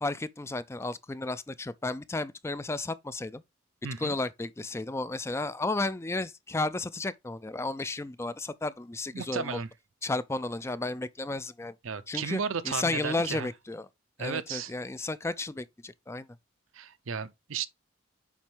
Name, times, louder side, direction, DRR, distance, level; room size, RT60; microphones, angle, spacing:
voice 1, 0.0-3.4 4.0-9.6 10.0-11.7 12.1-13.9 14.2-16.3, left 2 dB, 15° left, 0.3 m, -33 dB
voice 2, 3.8-4.2 9.1-9.7 11.8-13.5 14.2-14.7 16.7-17.7, right 6 dB, 90° right, 0.7 m, -34 dB
7.4 x 5.3 x 3.4 m
head